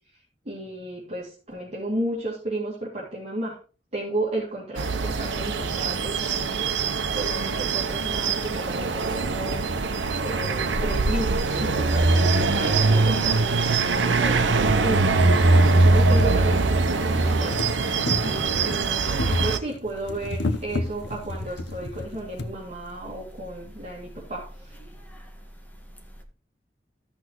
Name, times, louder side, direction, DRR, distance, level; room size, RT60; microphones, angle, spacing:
voice 1, 0.4-3.6 3.9-6.6 7.1-9.6 10.2-15.1 15.8-24.7, right 1 dB, 35° right, 2.5 m, -33 dB
sound 1, 4.8-19.6, right 3 dB, 85° right, 0.8 m, -22 dB
sound 2, 13.0-13.1 14.0-14.1 14.6-14.7 14.9-22.5 23.4-23.5 23.8-23.9, left 2 dB, 70° left, 0.8 m, -32 dB
voice 2, 24.9-26.2, left 1 dB, 10° left, 1.8 m, -43 dB
14.0 x 6.1 x 3.1 m
head